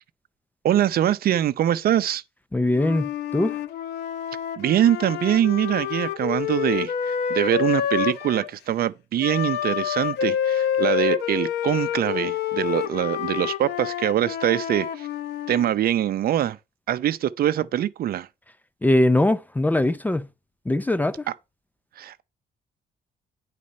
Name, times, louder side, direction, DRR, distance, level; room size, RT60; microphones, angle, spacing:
voice 1, 0.6-2.2 4.6-15.1 15.5-16.6 16.9-18.3 22.0-22.2, right 11 dB, 65° right, 0.6 m, -23 dB
voice 2, 2.5-3.6 18.8-20.3 20.7-21.3, left 1 dB, 10° left, 0.4 m, -21 dB
Wind instrument woodwind instrument, 2.7-8.5 9.2-15.7, left 9 dB, 85° left, 0.8 m, -28 dB
10.0 x 4.2 x 5.3 m
cardioid pair, 130°, 17 cm